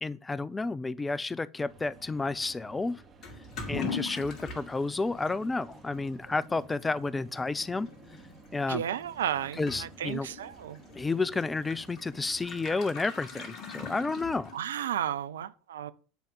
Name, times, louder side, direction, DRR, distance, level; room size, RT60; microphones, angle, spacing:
voice 1, 0.0-3.0 3.7-7.9 8.5-8.8 9.6-10.3 11.0-14.5, left 3 dB, 15° left, 0.5 m, -31 dB
sound 1, 1.7-12.8, right 4 dB, 25° right, 3.3 m, -54 dB
Toilet flush / Liquid, 3.2-14.9, left 4 dB, 40° left, 2.3 m, -42 dB
voice 2, 8.7-10.8 14.5-15.9, right 10 dB, 70° right, 0.6 m, -33 dB
9.3 x 5.0 x 7.5 m
figure-of-eight pair, 80°, 0 cm